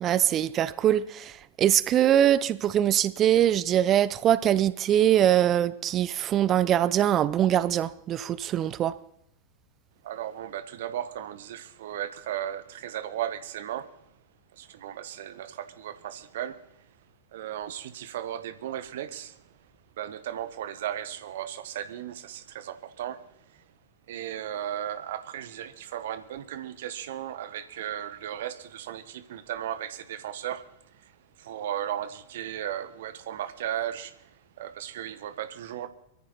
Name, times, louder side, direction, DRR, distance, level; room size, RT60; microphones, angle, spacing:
voice 1, 0.0-9.0, right 11 dB, 30° right, 0.6 m, -23 dB
voice 2, 10.0-14.1 14.5-17.0 17.3-19.6 20.0-23.6 24.1-35.9, right 11 dB, 55° right, 1.3 m, -36 dB
23.0 x 14.0 x 4.1 m
figure-of-eight pair, 90°, 0 cm